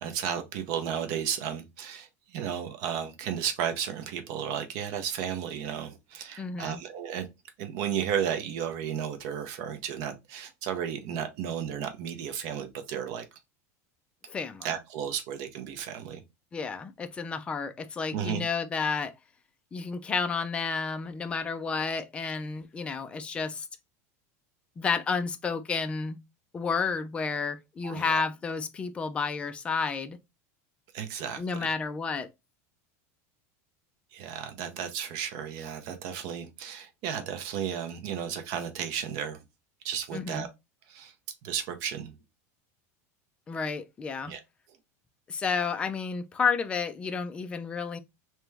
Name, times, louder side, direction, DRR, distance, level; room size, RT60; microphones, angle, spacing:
voice 1, 0.0-7.3 7.6-13.2 14.6-16.2 18.1-18.4 27.8-28.2 30.9-31.7 34.1-39.4 39.8-40.5 40.9-41.1 41.4-42.2 44.3-44.4, right 8 dB, 50° right, 0.7 m, -33 dB
voice 2, 6.4-6.8 14.3-14.7 16.5-19.1 19.7-23.7 24.8-26.2 26.5-30.2 31.4-32.3 40.1-40.5 43.5-44.3 45.3-48.0, left 5 dB, 15° left, 0.3 m, -31 dB
3.3 x 2.9 x 3.3 m
supercardioid pair, 165°, 8 cm